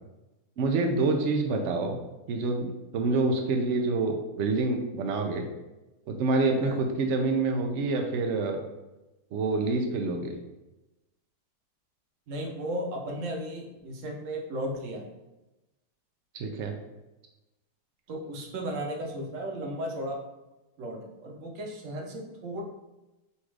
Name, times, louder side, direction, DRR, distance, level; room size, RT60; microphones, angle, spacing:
voice 1, 0.6-2.0 2.3-2.7 2.9-5.5 6.1-8.6 9.3-10.3 16.3-16.7, right 3 dB, 75° right, 3 dB, 0.6 m, -27 dB
voice 2, 12.3-15.1 18.1-20.2 20.8-22.6, right 1 dB, 60° right, 1 dB, 1.0 m, -35 dB
4.1 x 2.5 x 4.6 m, 1.0 s
omnidirectional pair, 1.8 m